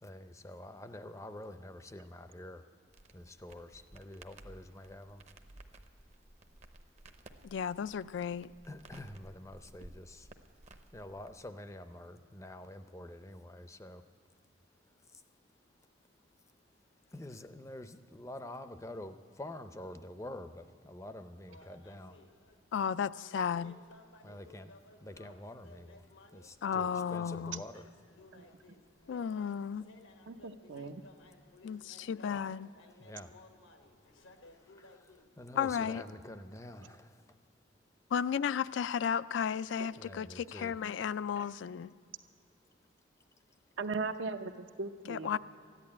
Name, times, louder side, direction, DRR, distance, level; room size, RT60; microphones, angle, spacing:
voice 1, 0.0-2.6 3.1-5.2 8.7-10.3 10.9-14.0 15.1-15.2 17.1-22.2 24.2-24.7 25.0-26.1 26.3-27.8 33.0-33.4 34.7-37.4 40.0-40.7, left 1 dB, 15° left, 9 dB, 0.5 m, -47 dB
Crackle, 2.9-11.5, right 2 dB, 35° right, 0.7 m, -56 dB
voice 2, 7.4-8.5 22.7-23.8 26.6-27.6 29.1-29.9 31.6-32.7 35.6-36.0 38.1-41.9 45.1-45.4, left 7 dB, 70° left, 15 dB, 0.3 m, -34 dB
sound 1, 21.5-22.6 23.5-35.3, left 2 dB, 90° left, 1.2 m, -59 dB
voice 3, 30.3-31.0 39.8-39.9 41.4-41.5 43.8-45.4, right 3 dB, 75° right, 8 dB, 0.7 m, -38 dB
14.0 x 11.0 x 8.6 m, 2.2 s
head